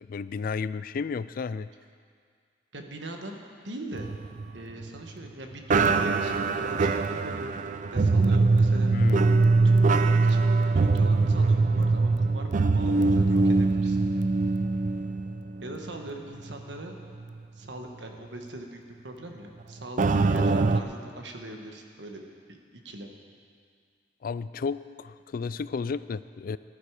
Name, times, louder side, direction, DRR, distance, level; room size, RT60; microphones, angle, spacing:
voice 1, 0.0-1.7 8.9-9.4 24.2-26.6, left 5 dB, 50° left, 16 dB, 0.3 m, -32 dB
voice 2, 2.7-4.1 4.5-7.5 7.9-9.0 9.6-10.5 10.8-14.0 15.6-17.0 17.5-22.2 22.5-23.1, right 1 dB, 80° right, 3 dB, 1.4 m, -41 dB
sound 1, 3.9-5.3 5.7-16.1 16.4-16.6 17.2-17.3 20.0-20.8, right 3 dB, 45° right, 0.4 m, -23 dB
14.5 x 11.0 x 4.9 m, 2.1 s
head